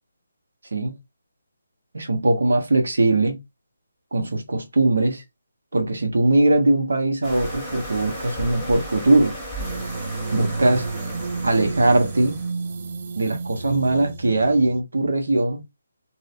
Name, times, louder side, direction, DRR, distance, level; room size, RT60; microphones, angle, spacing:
voice 1, 1.9-3.4 4.1-5.2 5.7-9.4 10.3-10.8 11.4-12.4 13.2-15.6, right 2 dB, 75° right, 0.7 m, -20 dB
sound 1, 7.2-12.5, equal, 5° right, 1.0 m, -35 dB
sound 2, 9.6-14.8, right 4 dB, 40° right, 0.4 m, -32 dB
2.7 x 2.1 x 2.4 m
figure-of-eight pair, 155°, 0 cm